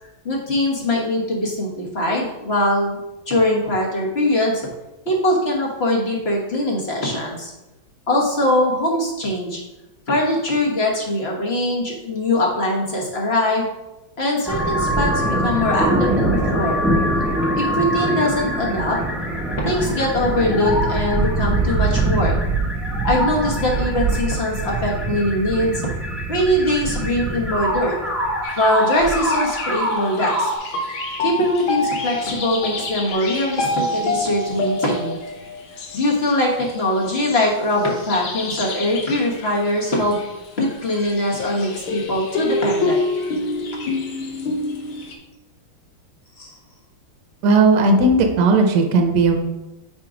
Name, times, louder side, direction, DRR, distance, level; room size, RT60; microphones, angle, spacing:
voice 1, 0.2-3.0 3.3-4.7 5.0-7.5 8.1-9.6 10.1-13.7 14.2-16.8 17.5-19.0 19.6-22.3 23.0-25.9 26.3-28.0 28.6-30.5 31.2-35.2 35.9-40.2 40.6-43.0 46.4-46.6, left 1 dB, 35° left, -2 dB, 1.3 m, -22 dB
sound 1, 14.5-30.6, right 1 dB, ahead, 0.4 m, -23 dB
sound 2, 28.4-45.2, left 2 dB, 75° left, 1.7 m, -28 dB
voice 2, 47.4-49.4, right 3 dB, 65° right, 4 dB, 1.3 m, -15 dB
5.2 x 4.5 x 4.9 m, 1.0 s
omnidirectional pair, 2.2 m